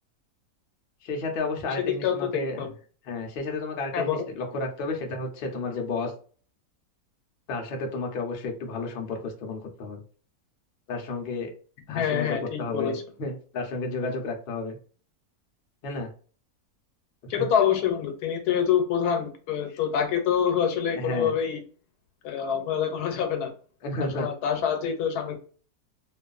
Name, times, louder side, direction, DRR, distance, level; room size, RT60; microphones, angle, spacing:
voice 1, 1.0-2.6 3.1-6.1 7.5-10.0 10.9-11.5 11.9-14.8 15.8-16.1 17.4-17.5 20.9-21.3 23.8-24.3, left 3 dB, 55° left, 2 dB, 0.7 m, -32 dB
voice 2, 3.9-4.2 11.9-13.0 17.3-21.6 22.2-23.5 24.0-25.4, left 8 dB, 90° left, 6 dB, 1.2 m, -26 dB
2.5 x 2.5 x 2.3 m, 0.41 s
omnidirectional pair, 1.6 m